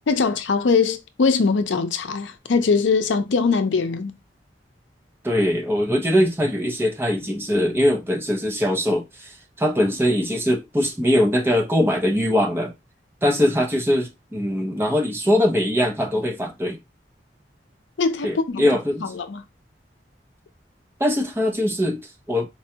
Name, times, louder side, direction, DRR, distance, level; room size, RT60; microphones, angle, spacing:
voice 1, 0.1-4.1 18.0-18.7 19.0-19.4, left 4 dB, 90° left, 0.5 m, -21 dB
voice 2, 5.2-12.7 13.2-16.8 18.2-19.1 21.0-22.5, equal, 15° right, 0.6 m, -22 dB
4.5 x 2.3 x 2.7 m
head